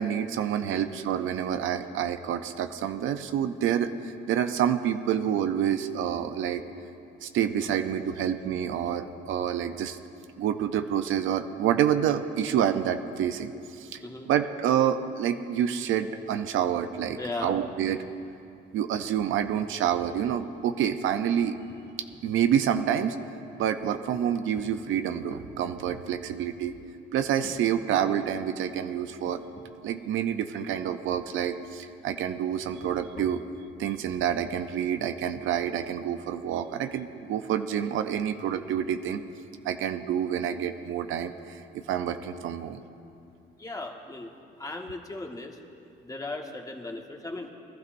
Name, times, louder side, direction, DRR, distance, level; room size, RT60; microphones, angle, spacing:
voice 1, 0.0-6.6 7.2-10.0 10.4-13.5 13.8-14.0 14.3-18.0 18.7-21.5 22.2-23.2 23.6-26.7 27.1-29.4 29.8-33.4 33.8-39.2 39.6-41.6 41.9-42.8, right 9 dB, 85° right, 9 dB, 0.6 m, -28 dB
voice 2, 14.0-14.3 17.1-17.7 43.6-44.3 44.6-45.6 46.0-47.5, left 2 dB, 15° left, 1 dB, 1.5 m, -37 dB
sound 1, 17.7-18.2 18.4-18.5 18.9-19.2 19.6-19.7 20.1-22.3 22.6-23.3 23.8-25.7 26.4-27.0 27.4-27.6 28.0-28.3 28.9-29.0 29.3-29.7 30.0-30.1 30.7-31.3 32.7-33.5, left 3 dB, 40° left, 1.7 m, -49 dB
22.5 x 12.0 x 2.6 m, 2.6 s
cardioid pair, 90°, 20 cm